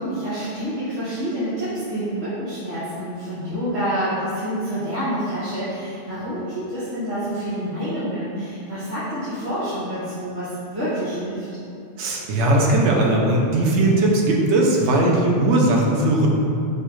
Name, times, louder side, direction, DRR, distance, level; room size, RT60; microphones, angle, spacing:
voice 1, 0.0-11.4, equal, 50° right, -15 dB, 1.4 m, -27 dB
voice 2, 12.0-16.3, right 1 dB, 70° right, -2 dB, 0.9 m, -18 dB
4.9 x 2.3 x 3.0 m, 2.6 s
omnidirectional pair, 1.3 m